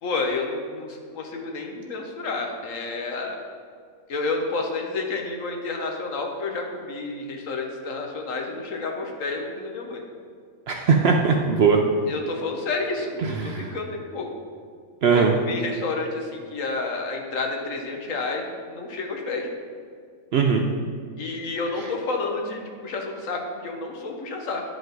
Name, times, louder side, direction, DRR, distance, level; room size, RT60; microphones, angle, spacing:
voice 1, 0.0-3.4 4.1-10.0 12.1-14.3 15.1-19.5 21.2-24.6, left 3 dB, 65° left, 2 dB, 1.3 m, -30 dB
voice 2, 10.7-11.8 13.4-13.7 15.0-15.4 20.3-20.6, right 5 dB, 60° right, 2 dB, 0.7 m, -19 dB
10.5 x 5.1 x 3.8 m, 2.1 s
omnidirectional pair, 1.5 m